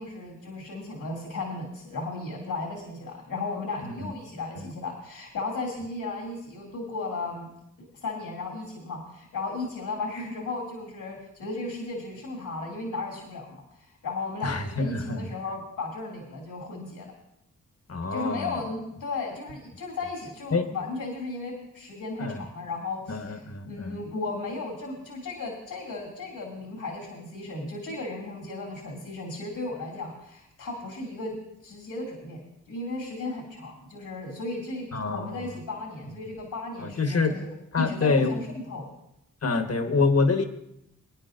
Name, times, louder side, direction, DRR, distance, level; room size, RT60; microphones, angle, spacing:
voice 1, 0.0-7.5 8.0-17.1 18.1-31.4 31.6-32.4 32.7-37.5 37.8-38.9, left 3 dB, 85° left, -1 dB, 2.5 m, -35 dB
voice 2, 14.4-15.3 17.9-18.6 20.5-20.7 22.2-22.4 23.1-24.0 34.9-35.4 36.8-37.4 37.7-38.4 39.4-40.4, left 4 dB, 50° left, 7 dB, 1.3 m, -26 dB
22.0 x 9.7 x 2.6 m, 0.79 s
cardioid pair, 45°, 32 cm